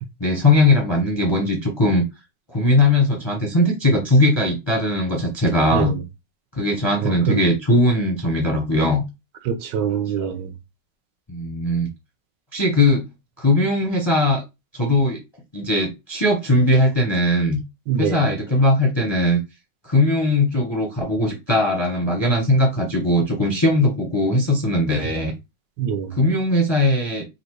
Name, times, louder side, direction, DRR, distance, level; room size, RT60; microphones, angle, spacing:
voice 1, 0.2-2.0 2.5-6.0 6.5-9.0 10.2-10.3 11.3-11.9 12.5-13.0 13.4-14.4 14.7-15.2 15.5-17.6 18.0-19.4 19.8-25.3 26.2-27.2, left 1 dB, 30° left, 0.5 m, -19 dB
voice 2, 7.0-7.4 9.5-10.5 17.9-18.3 25.8-26.2, right 8 dB, 80° right, 1.4 m, -24 dB
3.9 x 2.5 x 4.5 m
omnidirectional pair, 1.9 m